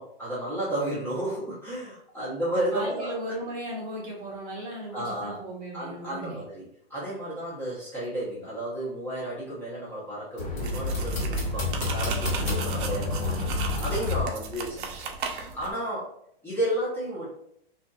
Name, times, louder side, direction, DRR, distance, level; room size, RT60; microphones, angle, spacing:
voice 1, 0.0-3.1 4.9-5.4 5.7-6.6 6.9-16.1 16.4-17.3, right 1 dB, 5° left, -8 dB, 0.8 m, -32 dB
voice 2, 2.7-6.4 12.4-12.9 13.2-13.5, right 1 dB, 30° right, -3 dB, 0.9 m, -37 dB
sound 1, 10.4-14.2, left 3 dB, 45° left, 1.5 m, -29 dB
sound 2, 10.6-15.7, right 5 dB, 55° right, 0.6 m, -36 dB
2.6 x 2.6 x 2.3 m, 0.70 s
hypercardioid pair, 125°, 30 cm